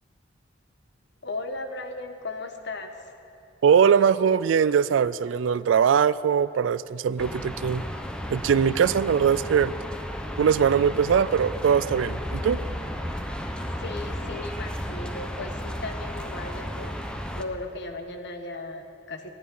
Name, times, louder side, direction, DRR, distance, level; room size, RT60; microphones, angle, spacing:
voice 1, 1.2-3.1 13.8-19.3, left 2 dB, 65° left, 6 dB, 1.3 m, -36 dB
voice 2, 3.6-7.8 8.3-9.7 10.4-12.6, right 7 dB, 80° right, 17 dB, 0.4 m, -21 dB
sound 1, 7.2-17.4, equal, 5° left, 0.9 m, -33 dB
23.5 x 10.5 x 5.5 m, 2.7 s
head